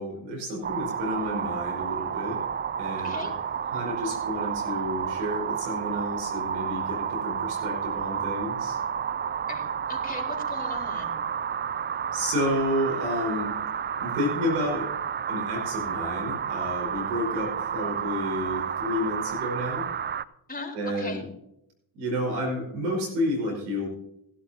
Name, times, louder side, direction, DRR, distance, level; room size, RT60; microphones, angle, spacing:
voice 1, 0.0-2.4 2.8-3.3 3.7-8.8 12.1-13.5 14.0-14.9 15.3-19.9 20.7-21.2 21.9-23.9, left 1 dB, 80° right, 0 dB, 4.9 m, -30 dB
sound 1, 0.6-20.2, right 8 dB, 25° right, 0.4 m, -31 dB
voice 2, 0.9-1.3 3.0-3.3 9.5-11.1 20.5-21.2, left 3 dB, 20° left, 0 dB, 4.5 m, -39 dB
17.0 x 11.5 x 2.8 m, 0.80 s
hypercardioid pair, 50°, 47 cm